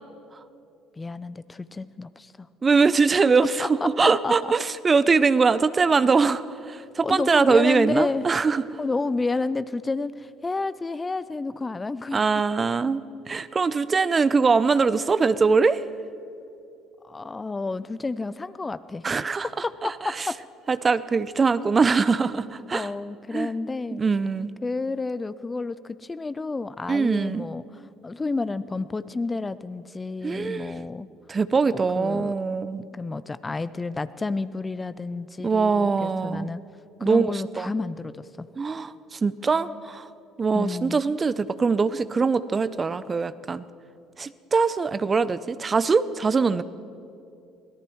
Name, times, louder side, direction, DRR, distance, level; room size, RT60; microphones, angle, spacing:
voice 1, 1.0-2.5 3.6-4.4 7.0-8.2 8.8-12.2 17.0-19.2 19.4-20.4 22.7-24.0 24.6-31.1 31.7-32.3 32.9-36.6 37.0-38.5 40.5-41.0, left 3 dB, 20° left, 15 dB, 0.5 m, -30 dB
voice 2, 2.6-8.6 12.1-15.8 19.0-19.5 19.8-20.3 20.7-22.9 23.3-23.5 23.9-24.5 26.9-27.5 30.2-30.7 31.3-32.9 35.4-36.5 37.0-37.7 38.6-40.1 40.4-43.6 44.2-46.6, right 4 dB, 30° right, 15 dB, 0.5 m, -22 dB
24.5 x 17.5 x 3.1 m, 2.7 s
hypercardioid pair, 60°, 0 cm